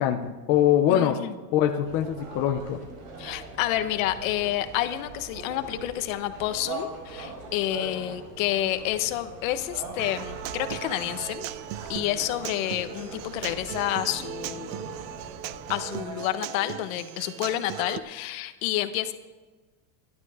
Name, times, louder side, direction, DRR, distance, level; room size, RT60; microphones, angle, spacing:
voice 1, 0.0-1.2 1.5-2.8, left 11 dB, 25° left, 4 dB, 0.5 m, -23 dB
voice 2, 0.9-1.3 3.2-11.5 11.9-14.8 15.7-19.1, left 14 dB, 50° left, 9 dB, 1.2 m, -29 dB
sound 1, 1.8-16.0, right 3 dB, 55° right, 5.1 m, -41 dB
Human voice / Acoustic guitar, 10.0-18.0, right 12 dB, 80° right, 0.9 m, -38 dB
27.5 x 12.0 x 3.6 m, 1.3 s
supercardioid pair, 175°, 50 cm